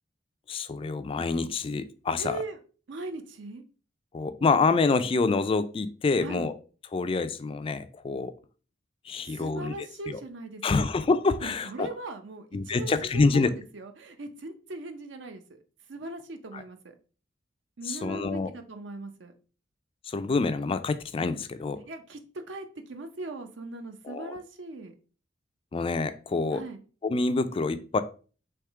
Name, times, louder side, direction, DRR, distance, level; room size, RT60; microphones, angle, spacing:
voice 1, 0.5-2.4 4.1-6.5 6.9-8.3 9.1-9.7 10.1-10.2 10.6-11.9 12.5-13.5 16.5-16.6 17.9-18.5 20.1-21.8 24.1-24.4 25.7-26.6 27.0-28.0, left 4 dB, 30° left, 11 dB, 0.3 m, -27 dB
voice 2, 2.2-2.6 2.9-3.6 6.2-6.5 9.2-10.9 11.4-15.6 15.9-16.9 17.8-19.3 21.8-24.9 26.5-26.8, right 2 dB, 70° right, 6 dB, 0.7 m, -40 dB
3.5 x 3.1 x 4.6 m, 0.38 s
head